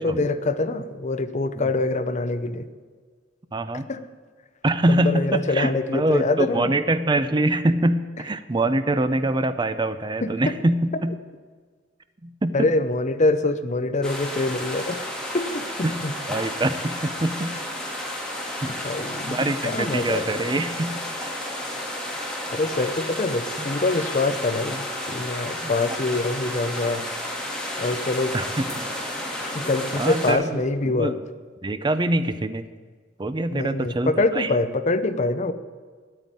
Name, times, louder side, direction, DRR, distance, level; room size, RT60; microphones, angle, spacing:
voice 1, 0.0-2.7 3.9-4.0 4.9-6.7 10.2-10.5 12.5-15.0 15.3-15.7 16.0-16.1 18.8-20.3 22.5-27.0 27.8-28.3 29.4-31.2 33.5-35.5, left 2 dB, 40° left, 10 dB, 0.7 m, -24 dB
voice 2, 3.5-3.9 4.6-11.2 12.2-12.7 15.8-16.0 16.3-17.6 18.6-18.7 19.3-21.0 25.6-25.7 28.3-28.8 30.0-31.2 31.6-32.7 33.2-34.5, right 2 dB, 25° right, 11 dB, 0.5 m, -24 dB
sound 1, 14.0-30.3, left 1 dB, 5° left, 2.3 m, -32 dB
9.8 x 9.2 x 9.0 m, 1.5 s
head